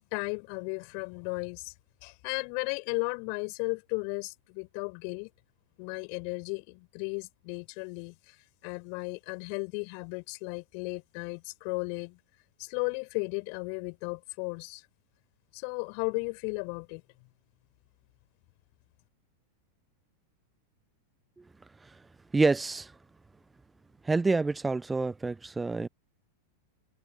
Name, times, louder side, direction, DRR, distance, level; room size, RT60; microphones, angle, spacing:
voice 1, 0.0-1.7 2.0-5.3 5.8-8.4 8.6-12.2 12.6-14.8 15.5-17.0, left 40 dB or more, 45° left, 5.7 m, -35 dB
voice 2, 22.3-22.9 24.0-25.9, right 3 dB, 10° right, 0.9 m, -27 dB
figure-of-eight pair, 90°, 0 cm